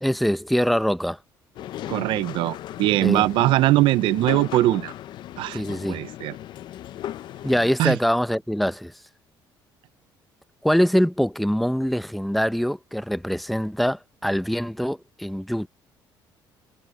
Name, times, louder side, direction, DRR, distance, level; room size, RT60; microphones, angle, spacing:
voice 1, 0.0-1.2 3.0-3.3 5.5-6.0 7.4-8.9 10.6-15.7, equal, ahead, 0.7 m, -23 dB
sound 1, 1.6-7.8, left 12 dB, 60° left, 0.6 m, -36 dB
voice 2, 1.9-4.9 5.4-5.6 5.9-6.3 7.8-8.0, right 16 dB, 75° right, 0.5 m, -21 dB
cardioid pair, 120°, 9 cm